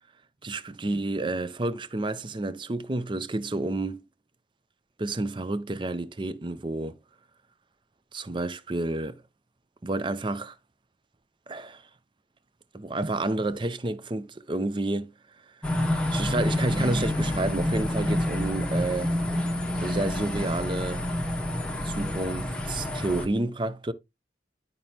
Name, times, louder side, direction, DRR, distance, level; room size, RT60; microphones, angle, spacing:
voice 1, 0.4-4.0 5.0-7.0 8.1-9.2 9.8-10.5 11.5-11.8 12.7-15.1 16.1-19.2 19.8-21.0 21.8-23.9, right 2 dB, 25° right, 0.5 m, -30 dB
sound 1, 15.6-23.3, left 1 dB, 5° left, 1.0 m, -28 dB
11.0 x 5.3 x 2.8 m
head